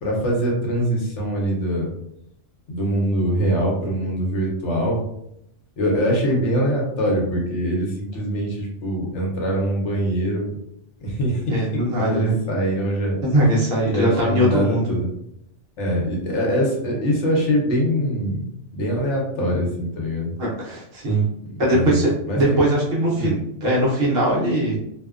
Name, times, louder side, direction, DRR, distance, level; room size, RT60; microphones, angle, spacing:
voice 1, 0.0-1.9 2.7-5.0 5.8-10.6 11.0-13.2 13.9-15.1 15.8-18.5 18.7-19.7 19.9-20.3 21.4-22.8 23.2-23.3, equal, 70° left, -1 dB, 1.0 m, -23 dB
voice 2, 11.5-12.3 13.2-15.0 20.4-21.2 21.6-24.8, right 1 dB, 55° right, -5 dB, 1.0 m, -21 dB
2.7 x 2.1 x 2.4 m, 0.78 s
omnidirectional pair, 1.3 m